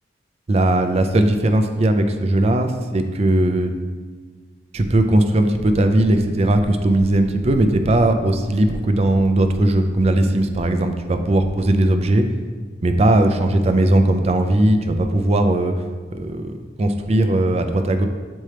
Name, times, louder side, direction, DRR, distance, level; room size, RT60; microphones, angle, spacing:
voice 1, 0.5-3.7 4.7-12.3 12.8-15.7 16.1-18.0, right 1 dB, 35° right, 7 dB, 0.4 m, -18 dB
7.5 x 4.3 x 3.3 m, 1.5 s
head